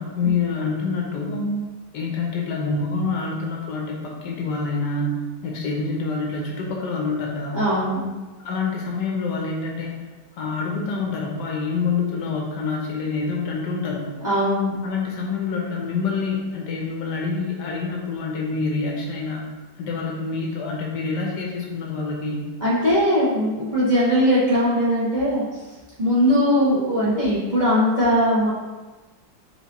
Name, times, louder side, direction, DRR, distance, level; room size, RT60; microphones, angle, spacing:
voice 1, 0.0-1.5 1.9-7.7 8.4-10.0 10.3-14.1 14.8-19.5 19.8-22.4, left 4 dB, 70° left, -1 dB, 1.2 m, -26 dB
voice 2, 7.5-8.1 14.2-14.8 22.6-25.4 26.0-28.5, equal, 30° right, -11 dB, 1.1 m, -20 dB
4.3 x 4.0 x 2.9 m, 1.2 s
omnidirectional pair, 2.0 m